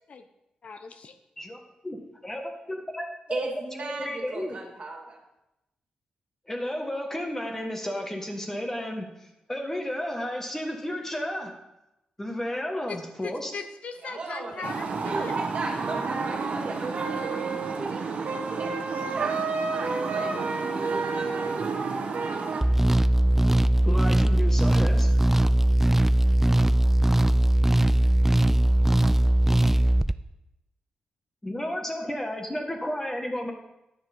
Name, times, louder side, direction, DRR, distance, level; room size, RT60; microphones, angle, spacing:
voice 1, 0.6-1.1 12.9-13.0 13.2-15.3 15.7-15.8 20.5-20.9, left 5 dB, 55° left, 8 dB, 0.8 m, -39 dB
voice 2, 2.2-3.5 4.0-4.6 6.5-9.1 9.5-11.5 12.2-13.5 23.8-25.2 31.4-33.5, left 1 dB, 15° left, 3 dB, 1.7 m, -32 dB
voice 3, 3.3-5.2 14.0-14.7 15.0-18.7 19.1-19.4 19.7-20.3 20.6-21.8, right 3 dB, 50° right, 1 dB, 2.2 m, -37 dB
sound 1, 14.6-22.6, right 4 dB, 65° right, 1.3 m, -29 dB
sound 2, 22.6-30.1, right 1 dB, 10° right, 0.4 m, -20 dB
10.0 x 6.4 x 5.4 m, 0.91 s
cardioid pair, 85°, 3 cm